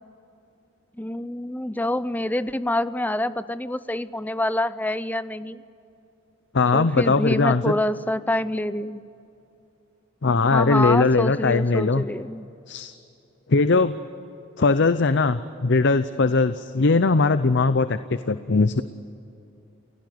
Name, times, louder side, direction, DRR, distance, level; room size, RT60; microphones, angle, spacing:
voice 1, 1.0-5.6 6.7-9.0 10.5-12.5, left 1 dB, 10° left, 14 dB, 0.6 m, -26 dB
voice 2, 6.5-7.7 10.2-12.0 12.7-12.9 13.5-13.9 14.6-18.8, left 3 dB, 60° left, 12 dB, 0.7 m, -20 dB
29.0 x 17.0 x 9.4 m, 2.7 s
head